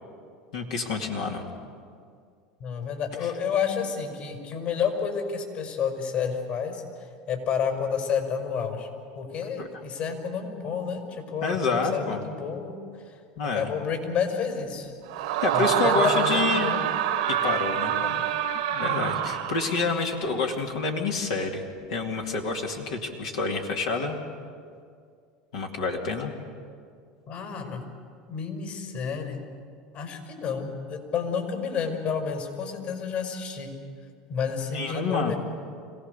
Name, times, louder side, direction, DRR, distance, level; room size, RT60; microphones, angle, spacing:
voice 1, 0.5-1.5 3.2-3.3 9.6-9.7 11.4-12.2 13.4-13.7 15.3-16.7 17.3-18.0 18.7-21.6 21.9-24.2 25.5-26.3 34.7-35.3, left 4 dB, 80° left, 1 dB, 2.4 m, -28 dB
voice 2, 2.6-6.8 7.3-8.9 9.2-12.8 13.1-13.2 13.5-14.9 15.5-16.8 18.0-18.2 18.8-19.2 27.3-27.8 28.3-29.4 29.9-33.7 34.3-35.4, left 6 dB, 55° left, 4 dB, 5.8 m, -30 dB
Screaming, 15.1-19.9, right 10 dB, 75° right, 1.2 m, -26 dB
26.0 x 17.5 x 6.9 m, 2.2 s
hypercardioid pair, 95°, 3 cm